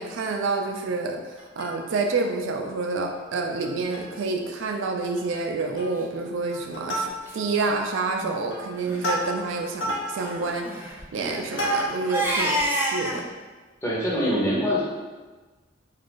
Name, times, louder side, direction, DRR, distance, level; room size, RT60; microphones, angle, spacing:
voice 1, 0.0-13.2, right 3 dB, 90° right, 3 dB, 0.4 m, -28 dB
Plucked string instrument, 1.4-2.2 2.6-2.7 2.9-3.2 3.6-4.3 4.6-4.7 5.0-5.4 5.8-6.1 6.5-7.6 8.1-12.2 12.7-12.8, equal, 75° left, 0.7 m, -32 dB
Crying sobbing, 6.3-6.6 7.3-7.4 7.6-7.7 8.1-8.3 8.7-9.0 10.1-13.2, right 1 dB, 10° right, 0.3 m, -29 dB
voice 2, 13.8-14.8, equal, 15° left, -7 dB, 0.7 m, -24 dB
2.5 x 2.4 x 3.5 m, 1.3 s
head